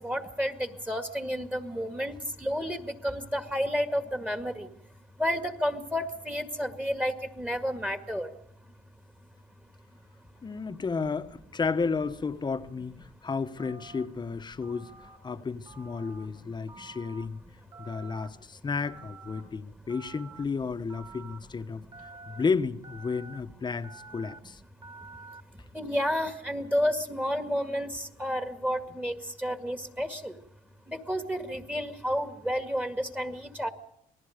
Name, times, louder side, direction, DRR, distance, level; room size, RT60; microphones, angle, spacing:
voice 1, 0.0-4.7 5.2-8.3 16.8-16.9 19.5-19.6 21.8-21.9 25.7-30.4 30.9-33.7, equal, 10° right, 1.9 m, -31 dB
voice 2, 10.4-14.9 15.2-17.4 17.8-24.6, left 5 dB, 25° left, 1.2 m, -32 dB
Telephone, 13.6-14.1 14.6-15.2 15.7-16.3 16.7-17.3 17.7-18.3 18.8-19.4 19.9-20.4 20.9-21.4 21.9-22.4 22.8-23.4 23.8-24.4 24.8-25.4, right 4 dB, 30° right, 3.0 m, -48 dB
27.5 x 19.0 x 5.2 m
cardioid pair, 110°, 17 cm